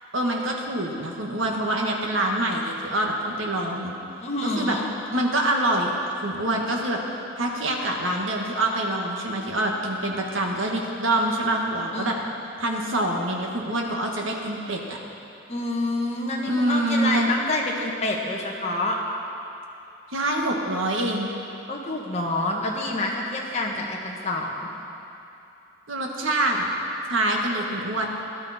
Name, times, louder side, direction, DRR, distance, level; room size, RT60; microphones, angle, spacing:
voice 1, 0.1-3.9 4.4-4.8 5.1-7.0 7.4-12.1 12.6-15.0 16.5-17.3 20.1-21.3 25.9-26.7 27.1-28.1, right 1 dB, 85° right, 0 dB, 1.7 m, -25 dB
voice 2, 4.2-4.9 11.9-12.3 15.5-19.0 21.7-24.7, left 2 dB, 35° left, -1 dB, 1.5 m, -27 dB
17.0 x 12.0 x 4.4 m, 2.7 s
head